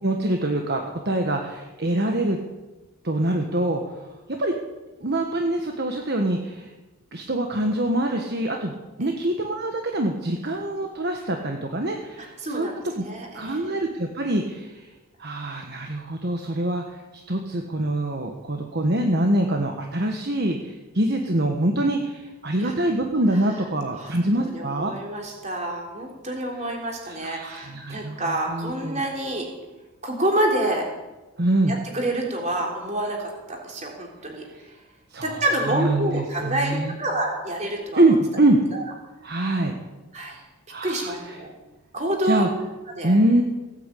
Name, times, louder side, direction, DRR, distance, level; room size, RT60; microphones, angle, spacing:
voice 1, 0.0-2.4 3.0-4.1 4.4-4.5 5.0-6.7 7.1-12.7 12.9-13.0 13.3-14.9 15.2-17.0 17.3-24.9 27.1-29.0 31.4-31.8 35.1-36.9 38.0-38.6 39.2-39.7 40.7-41.1 42.2-42.5 43.0-43.4, right 1 dB, 45° right, 3 dB, 1.4 m, -24 dB
voice 2, 12.2-13.7 22.6-22.7 24.0-24.2 24.4-29.5 30.0-30.9 31.7-34.8 35.2-38.0 38.7-38.8 40.1-40.4 40.8-41.5 41.9-42.5 43.0-43.2, right 1 dB, 30° right, 0 dB, 3.7 m, -28 dB
17.5 x 9.3 x 8.4 m, 1.1 s
head